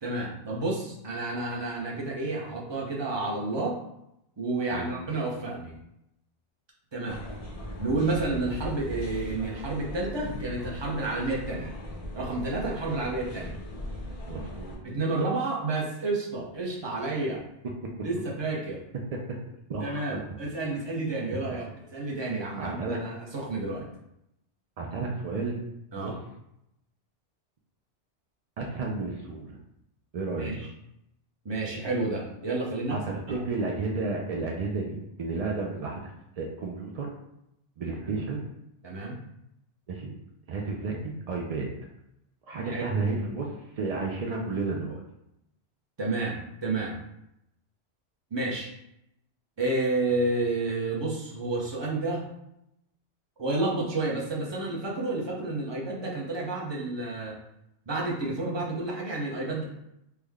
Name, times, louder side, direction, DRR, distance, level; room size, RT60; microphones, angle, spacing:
voice 1, 0.0-3.8 4.4-5.8 6.9-7.2 7.8-11.7 12.1-13.6 14.8-17.4 18.0-18.8 19.8-23.9 25.9-26.1 30.4-30.7 31.4-33.0 37.9-38.2 38.8-39.2 40.8-41.0 42.6-42.9 46.0-47.0 48.3-48.7 49.6-52.2 53.4-57.4 57.9-59.6, right 2 dB, 30° right, -3 dB, 0.6 m, -30 dB
sound 1, 7.1-14.8, left 1 dB, 45° left, 0.5 m, -39 dB
voice 2, 14.3-14.8 17.6-17.9 19.3-19.4 19.7-20.0 22.6-23.0 24.8-25.6 26.0-26.2 28.6-29.6 30.1-30.5 32.9-36.1 36.4-37.1 37.8-38.4 39.9-40.1 40.5-41.7 42.5-45.0, right 3 dB, 80° right, -1 dB, 0.3 m, -32 dB
3.3 x 2.1 x 3.4 m, 0.83 s
omnidirectional pair, 1.2 m